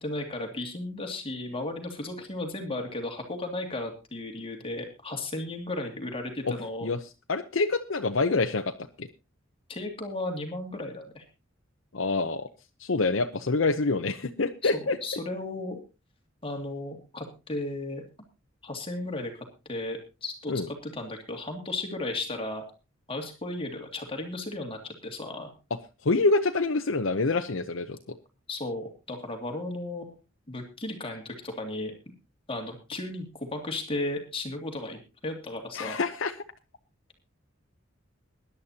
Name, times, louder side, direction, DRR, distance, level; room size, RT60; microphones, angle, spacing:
voice 1, 0.0-6.9 9.7-11.2 14.6-15.8 16.4-18.0 18.6-19.3 19.7-22.6 23.1-25.5 28.5-30.2 30.5-31.9 32.5-36.0, left 2 dB, 30° left, 3 dB, 2.5 m, -35 dB
voice 2, 7.3-9.1 11.9-12.5 12.8-15.0 20.5-20.7 26.0-28.0 35.7-36.3, left 3 dB, 70° left, 5 dB, 0.8 m, -26 dB
22.0 x 11.0 x 2.9 m, 0.29 s
head